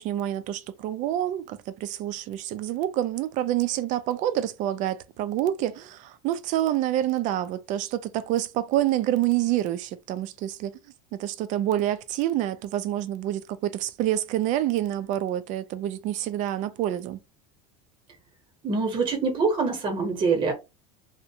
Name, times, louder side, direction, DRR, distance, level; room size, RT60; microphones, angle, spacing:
voice 1, 0.0-10.7 11.1-17.2, right 12 dB, 45° right, 0.4 m, -27 dB
voice 2, 18.6-20.5, right 4 dB, 30° right, 0.9 m, -24 dB
2.5 x 2.1 x 2.7 m
supercardioid pair, 120°, 18 cm